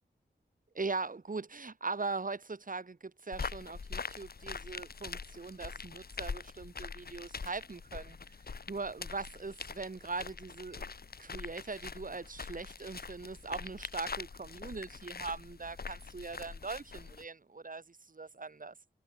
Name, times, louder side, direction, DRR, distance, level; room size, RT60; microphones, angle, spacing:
voice 1, 0.7-8.2 8.7-10.9 11.2-18.7, right 4 dB, 45° right, 2.2 m, -40 dB
sound 1, 3.3-17.2, left 5 dB, 55° left, 1.1 m, -44 dB
wide cardioid pair, 75°, 19 cm